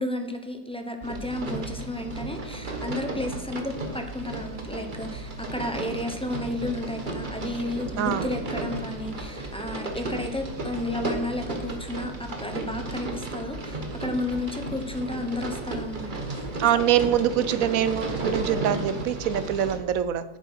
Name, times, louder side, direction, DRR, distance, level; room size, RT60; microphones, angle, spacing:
voice 1, 0.0-16.5 16.7-16.8, left 2 dB, 5° left, 4 dB, 0.7 m, -32 dB
sound 1, 1.0-19.8, right 2 dB, 40° right, 1.3 m, -34 dB
voice 2, 8.0-8.3 16.6-20.2, right 10 dB, 90° right, 13 dB, 1.1 m, -24 dB
8.3 x 7.4 x 5.6 m, 1.0 s
omnidirectional pair, 1.4 m